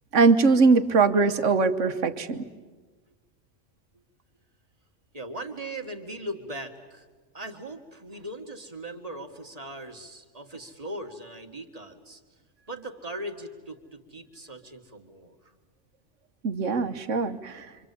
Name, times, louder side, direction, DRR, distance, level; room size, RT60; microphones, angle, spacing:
voice 1, 0.1-2.4 16.4-17.7, right 4 dB, 85° right, 9 dB, 1.5 m, -21 dB
voice 2, 5.1-7.1 7.3-12.2 12.7-15.5, right 1 dB, 30° right, 4 dB, 2.2 m, -39 dB
27.0 x 26.0 x 8.5 m, 1.3 s
omnidirectional pair, 1.2 m